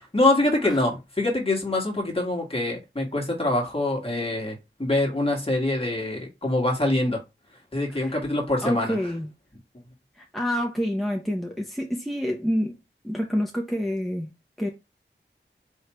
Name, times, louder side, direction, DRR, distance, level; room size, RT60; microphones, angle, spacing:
voice 1, 0.1-7.2 7.7-9.0, left 2 dB, 30° left, 1.8 m, -24 dB
voice 2, 7.9-8.2 8.6-9.3 10.2-12.7 13.0-14.3 14.6-14.7, equal, ahead, 0.9 m, -28 dB
4.7 x 3.2 x 3.1 m
wide cardioid pair, 55°, 20 cm